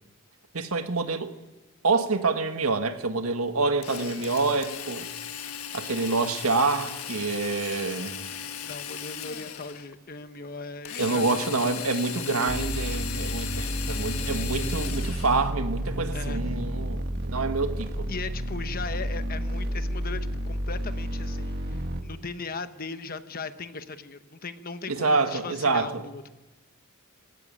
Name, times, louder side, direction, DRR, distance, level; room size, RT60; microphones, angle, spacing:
voice 1, 0.5-1.3 1.8-5.1 5.7-8.3 11.0-18.1 24.9-26.0, right 3 dB, 85° right, 1.5 m, -27 dB
Drill, 3.8-9.9 10.9-15.5, left 8 dB, 85° left, 1.5 m, -37 dB
voice 2, 8.6-11.4 11.8-11.9 16.1-16.6 18.1-26.3, left 4 dB, 45° left, 1.1 m, -38 dB
sound 1, 12.5-22.0, equal, 50° right, 1.9 m, -31 dB
20.0 x 17.0 x 8.8 m
head